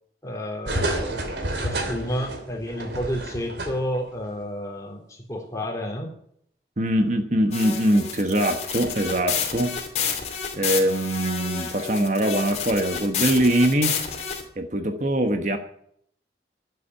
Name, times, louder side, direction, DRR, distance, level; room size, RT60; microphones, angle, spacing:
voice 1, 0.2-1.2 1.6-6.1, equal, 20° left, 0 dB, 3.5 m, -30 dB
sound 1, 0.6-4.1 4.4-4.5, right 1 dB, 90° right, 3.0 m, -29 dB
voice 2, 6.8-9.8 10.6-14.0 14.6-15.6, right 1 dB, 45° right, 6 dB, 1.3 m, -22 dB
sound 2, 7.5-14.4, left 7 dB, 40° left, 2.7 m, -29 dB
13.0 x 8.4 x 9.2 m, 0.68 s
head